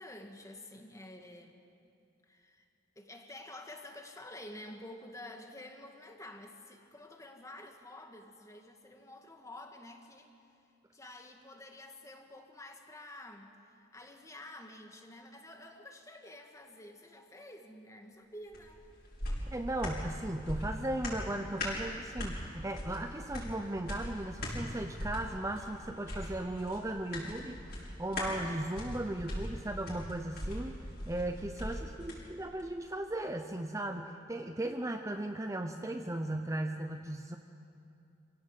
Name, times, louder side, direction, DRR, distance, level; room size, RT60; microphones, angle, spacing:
voice 1, 0.0-1.5 2.3-2.7 3.0-10.3 10.9-18.8 32.0-32.4, left 1 dB, 15° left, 4 dB, 1.8 m, -50 dB
sound 1, 18.5-32.2 32.6-32.7, left 1 dB, 55° left, 6.3 m, -40 dB
voice 2, 19.5-37.4, right 1 dB, 15° right, 5 dB, 0.7 m, -37 dB
26.0 x 16.5 x 8.1 m, 2.6 s
head